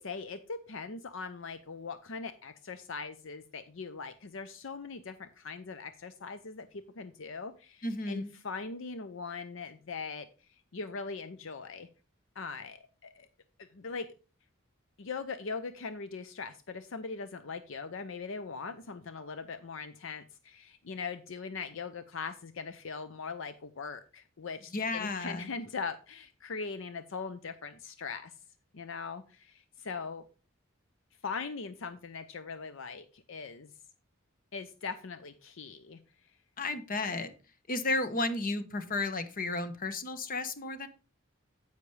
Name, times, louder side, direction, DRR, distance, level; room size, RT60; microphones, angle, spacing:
voice 1, 0.0-10.3 10.7-11.9 12.4-13.3 13.6-14.1 15.0-28.3 28.7-30.2 31.2-33.7 34.5-36.0, left 4 dB, 65° left, 11 dB, 0.7 m, -40 dB
voice 2, 7.8-8.3 24.7-25.5 36.6-37.3 37.7-40.9, left 2 dB, 45° left, 11 dB, 1.0 m, -33 dB
10.0 x 8.2 x 3.3 m, 0.34 s
head